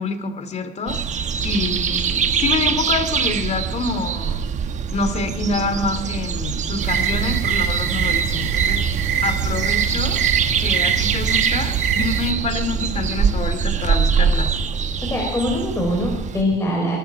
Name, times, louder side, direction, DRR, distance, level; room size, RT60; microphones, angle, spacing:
voice 1, 0.0-4.4 4.9-10.2 10.6-14.5, left 3 dB, 40° left, 9 dB, 2.6 m, -27 dB
sound 1, 0.9-16.4, right 6 dB, 45° right, 1.2 m, -24 dB
sound 2, 6.8-12.3, right 8 dB, 85° right, 1.7 m, -23 dB
voice 2, 15.0-17.0, left 1 dB, 15° left, -1 dB, 4.5 m, -22 dB
23.0 x 12.0 x 4.8 m, 0.91 s
cardioid pair, 110°, 17 cm